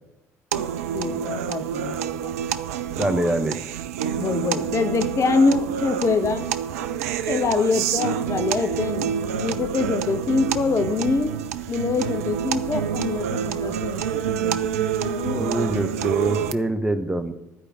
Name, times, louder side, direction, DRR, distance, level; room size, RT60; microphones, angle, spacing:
voice 1, 0.5-2.3 4.2-6.5 7.3-11.3 11.7-15.8, left 4 dB, 35° left, 10 dB, 0.9 m, -25 dB
sound 1, 0.5-16.5, right 8 dB, 70° right, 0.5 m, -27 dB
voice 2, 3.0-3.6 15.3-17.3, right 1 dB, 10° right, 7 dB, 1.0 m, -24 dB
13.0 x 5.0 x 8.6 m, 0.95 s
figure-of-eight pair, 50°, 8 cm